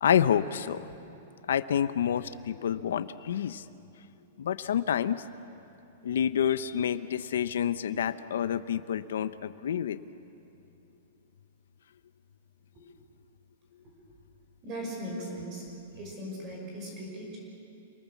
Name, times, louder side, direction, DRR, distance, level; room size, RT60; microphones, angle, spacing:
voice 1, 0.0-0.9 1.5-3.6 4.4-5.2 6.0-10.0, left 9 dB, 85° left, 12 dB, 0.7 m, -28 dB
voice 2, 14.6-15.7 16.0-17.4, right 1 dB, 25° right, -1 dB, 5.7 m, -38 dB
27.0 x 19.5 x 7.2 m, 2.8 s
supercardioid pair, 160°, 0 cm